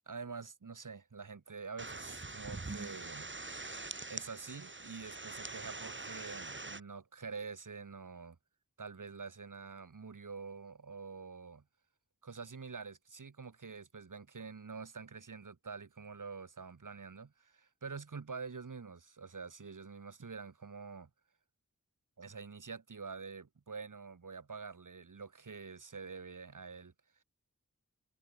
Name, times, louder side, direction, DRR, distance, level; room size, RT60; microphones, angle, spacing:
voice 1, 0.1-3.3 4.1-8.4 8.8-11.6 12.2-21.1 22.2-26.9, right 5 dB, 75° right, 1.3 m, -46 dB
sound 1, 1.8-6.8, right 3 dB, 35° right, 1.4 m, -44 dB
wide cardioid pair, 40°, 32 cm